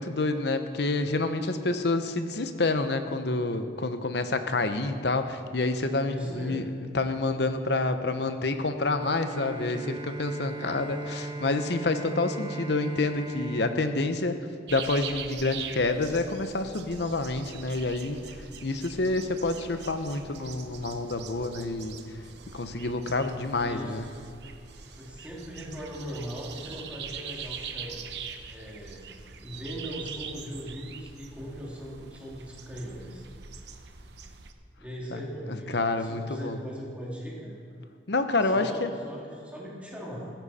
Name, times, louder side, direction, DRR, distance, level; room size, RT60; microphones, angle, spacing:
voice 1, 0.0-6.7 6.9-18.2 18.6-22.0 22.5-24.0 35.1-35.2 35.5-36.6 38.1-38.9, left 2 dB, 65° left, 8 dB, 0.9 m, -28 dB
voice 2, 6.1-6.7 23.6-24.0 25.0-28.0 28.5-29.0 29.4-33.2 34.8-37.5 38.4-40.3, equal, 5° right, -5 dB, 2.6 m, -39 dB
Bowed string instrument, 9.0-15.0, right 2 dB, 25° right, 0.7 m, -38 dB
sound 1, 14.7-34.5, right 6 dB, 65° right, 0.9 m, -43 dB
15.0 x 14.5 x 4.3 m, 2.4 s
head